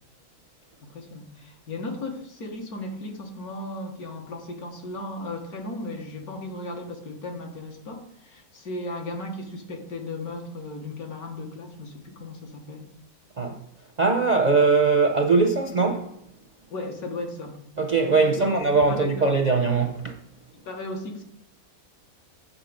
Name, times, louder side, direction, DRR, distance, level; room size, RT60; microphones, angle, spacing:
voice 1, 0.8-12.9 16.7-17.6 18.1-18.5 18.9-19.4 20.6-21.2, left 2 dB, 75° left, 1.8 m, -36 dB
voice 2, 14.0-16.1 17.8-20.1, right 4 dB, 45° right, 0.5 m, -21 dB
7.4 x 6.2 x 5.1 m
omnidirectional pair, 1.6 m